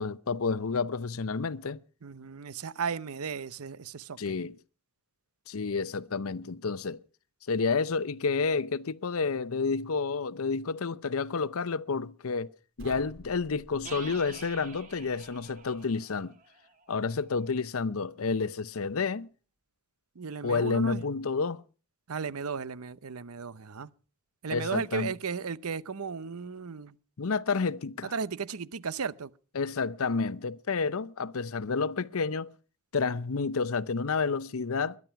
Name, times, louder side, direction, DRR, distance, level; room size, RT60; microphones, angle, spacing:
voice 1, 0.0-1.8 4.2-4.6 5.5-7.0 7.5-16.3 16.9-19.3 20.4-21.6 24.5-25.1 27.2-28.1 29.5-32.5 32.9-35.0, left 4 dB, 80° left, 0.7 m, -30 dB
voice 2, 2.0-4.3 20.2-21.0 22.1-23.9 24.4-26.9 28.0-29.3, right 5 dB, 90° right, 0.7 m, -35 dB
sound 1, 12.8-15.9, right 1 dB, 60° right, 3.4 m, -51 dB
sound 2, 13.8-17.5, right 5 dB, 35° right, 2.3 m, -48 dB
21.5 x 11.0 x 5.8 m
head